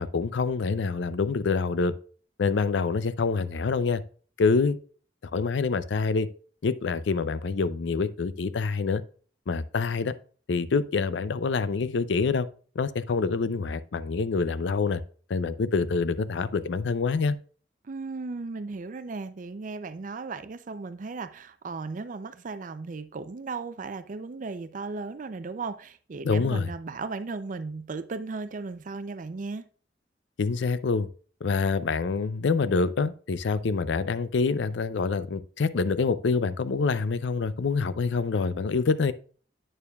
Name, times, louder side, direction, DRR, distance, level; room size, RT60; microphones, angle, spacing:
voice 1, 0.0-1.9 2.4-4.0 4.4-4.8 5.3-6.3 6.6-9.0 9.5-10.1 10.5-12.5 12.8-15.0 15.3-17.4 26.2-26.7 30.4-31.1 31.4-39.1, left 4 dB, 80° left, 0.5 m, -26 dB
voice 2, 17.8-29.7, right 4 dB, 45° right, 0.4 m, -36 dB
8.8 x 6.8 x 2.3 m
head